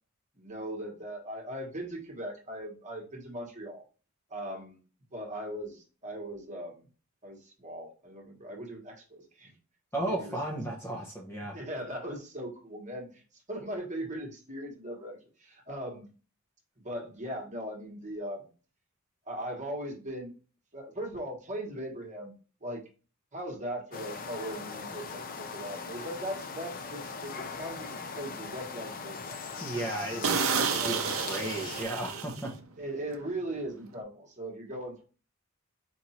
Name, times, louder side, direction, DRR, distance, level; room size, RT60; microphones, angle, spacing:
voice 1, 0.3-3.8 4.3-4.8 5.1-6.9 7.2-9.5 10.0-10.4 11.5-16.1 16.8-18.4 19.2-20.3 20.7-22.3 22.6-22.9 23.3-29.4 30.1-30.4 30.8-31.3 32.8-35.0, right 1 dB, 35° right, 0 dB, 1.3 m, -39 dB
voice 2, 9.9-11.6 29.6-32.5, right 1 dB, 10° left, 0 dB, 0.9 m, -35 dB
sound 1, 23.9-31.8, left 5 dB, 40° left, 0.5 m, -40 dB
sound 2, 25.0-25.1 25.7-25.9 26.4-26.5 26.9-27.0 27.4-28.0 28.4-28.5 28.9-29.1 29.3-29.4 29.8-29.9 30.2-32.8 33.0-33.3, right 6 dB, 65° right, 0.6 m, -31 dB
4.6 x 2.6 x 4.1 m, 0.34 s
head